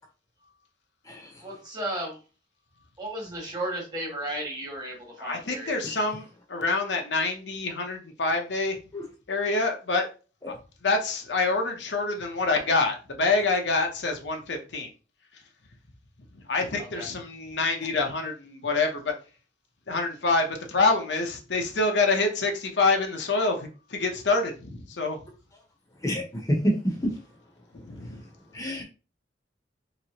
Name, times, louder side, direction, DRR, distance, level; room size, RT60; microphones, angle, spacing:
voice 1, 1.4-2.2 3.0-5.7 16.8-17.1, right 1 dB, 25° right, 1.3 m, -34 dB
voice 2, 5.2-8.8 9.3-10.0 10.5-10.6 10.8-14.9 16.5-19.1 19.9-25.2 27.7-28.2, left 3 dB, 70° left, 0.7 m, -26 dB
voice 3, 26.0-27.1 28.5-28.8, equal, 20° left, 0.8 m, -27 dB
3.2 x 3.0 x 2.8 m
head